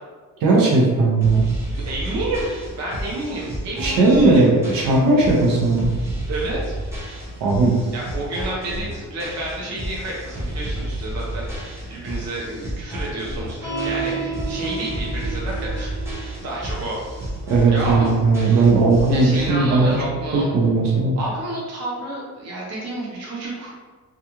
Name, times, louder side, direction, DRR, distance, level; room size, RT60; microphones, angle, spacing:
voice 1, 0.4-1.5 3.8-5.9 7.4-7.7 17.5-20.0 20.3-21.2, right 3 dB, 85° right, -3 dB, 0.7 m, -17 dB
sound 1, 1.2-19.5, right 1 dB, 10° right, 0.4 m, -31 dB
voice 2, 1.6-2.5 2.8-4.5 6.3-6.7 7.9-11.5 11.9-16.2 16.4-17.0 17.7-18.1 19.1-20.5 21.2-23.7, right 2 dB, 50° right, -4 dB, 0.7 m, -30 dB
sound 2, 13.6-20.3, right 4 dB, 35° right, 1.2 m, -33 dB
2.4 x 2.3 x 2.9 m, 1.4 s
cardioid pair, 175°, 34 cm